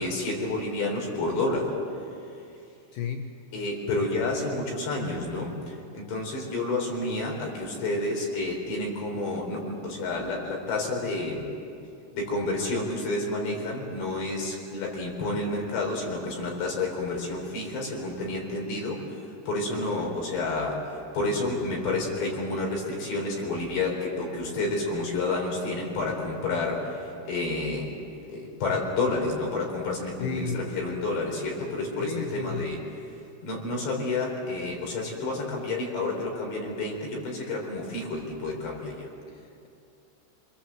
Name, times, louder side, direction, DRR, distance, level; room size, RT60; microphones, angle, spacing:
voice 1, 0.0-1.7 3.5-11.5 12.1-19.2 19.5-20.9 21.1-27.9 28.3-32.8 33.4-39.1, left 2 dB, 65° left, 0 dB, 6.4 m, -30 dB
voice 2, 2.9-3.3 30.2-30.7 32.0-32.7 39.3-39.7, left 6 dB, 80° left, 4 dB, 1.8 m, -33 dB
27.5 x 23.0 x 7.8 m, 2.6 s
omnidirectional pair, 5.6 m